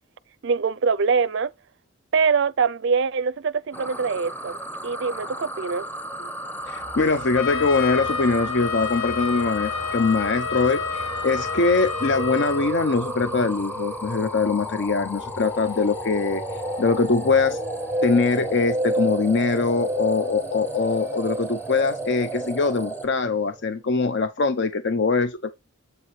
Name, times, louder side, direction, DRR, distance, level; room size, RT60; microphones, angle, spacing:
voice 1, 0.4-1.5 2.1-4.6 4.8-5.9, right 5 dB, 60° right, 0.4 m, -23 dB
sound 1, 3.7-23.0, right 1 dB, 10° left, 0.8 m, -35 dB
voice 2, 6.6-16.4 16.8-17.6 18.0-25.5, left 4 dB, 55° left, 0.6 m, -22 dB
sound 2, 6.7-23.7, right 1 dB, 10° right, 0.6 m, -33 dB
Trumpet, 7.3-12.6, left 6 dB, 80° left, 1.2 m, -30 dB
8.0 x 6.9 x 3.2 m
head